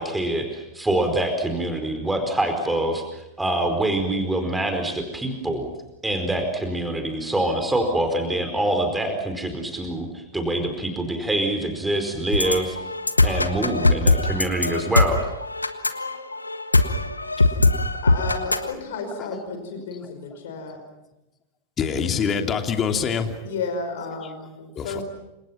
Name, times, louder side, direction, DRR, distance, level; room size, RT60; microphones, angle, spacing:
voice 1, 0.0-5.7 6.0-12.8 13.2-15.2, right 1 dB, 5° right, 5 dB, 4.7 m, -25 dB
sound 1, 12.3-18.7, left 2 dB, 80° left, 1.5 m, -21 dB
voice 2, 18.0-20.8 23.4-25.0, left 4 dB, 55° left, 6 dB, 5.2 m, -32 dB
voice 3, 21.8-23.4 24.8-25.0, left 6 dB, 25° left, 5 dB, 3.0 m, -25 dB
29.5 x 26.5 x 5.9 m, 0.95 s
figure-of-eight pair, 90°, 0 cm